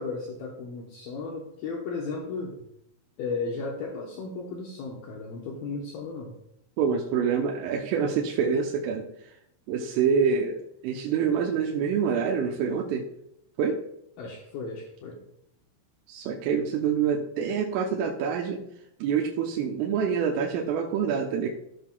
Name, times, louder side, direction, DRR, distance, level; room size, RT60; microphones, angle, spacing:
voice 1, 0.0-2.7 3.2-6.4 14.2-15.2, left 4 dB, 75° left, -2 dB, 2.3 m, -35 dB
voice 2, 6.8-9.3 9.7-13.1 13.6-13.9 16.1-18.7 19.0-21.5, right 6 dB, 90° right, -1 dB, 3.4 m, -26 dB
15.5 x 5.5 x 2.3 m, 0.76 s
omnidirectional pair, 5.6 m